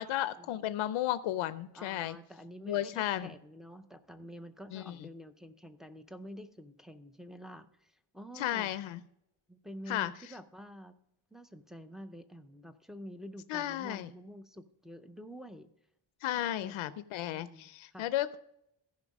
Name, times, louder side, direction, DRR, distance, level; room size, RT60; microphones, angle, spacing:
voice 1, 0.0-2.2 2.7-3.3 4.7-4.9 8.4-9.0 9.9-10.1 13.5-14.1 16.2-18.4, left 13 dB, 85° left, 13 dB, 0.6 m, -34 dB
voice 2, 1.7-8.7 9.5-10.9 11.3-15.7 16.4-17.0 17.3-18.1, equal, ahead, 7 dB, 0.4 m, -48 dB
14.5 x 5.4 x 5.2 m, 0.77 s
wide cardioid pair, 165°, 47 cm